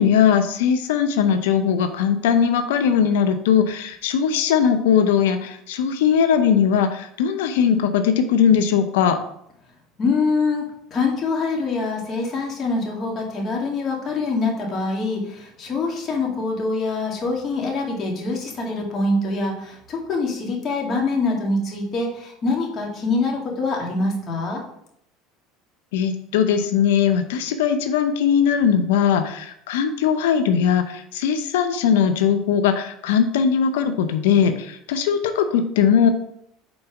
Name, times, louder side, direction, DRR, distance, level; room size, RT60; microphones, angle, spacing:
voice 1, 0.0-9.2 25.9-36.1, left 7 dB, 85° left, 8 dB, 0.6 m, -19 dB
voice 2, 10.0-24.6, left 3 dB, 40° left, -1 dB, 2.0 m, -24 dB
5.3 x 4.0 x 5.8 m, 0.72 s
supercardioid pair, 100°, 0 cm